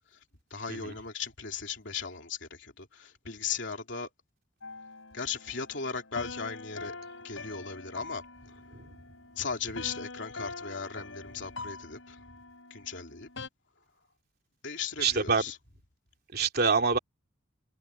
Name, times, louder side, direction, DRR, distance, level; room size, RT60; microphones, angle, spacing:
voice 1, 0.5-4.1 5.1-7.0 7.2-8.2 8.5-8.6 9.4-12.3 12.7-13.3 14.6-15.6, left 5 dB, 65° left, 3.4 m, -37 dB
sound 1, 4.6-13.5, left 3 dB, 85° left, 5.9 m, -44 dB
voice 2, 15.0-15.4 16.3-17.0, right 4 dB, 55° right, 3.0 m, -26 dB
head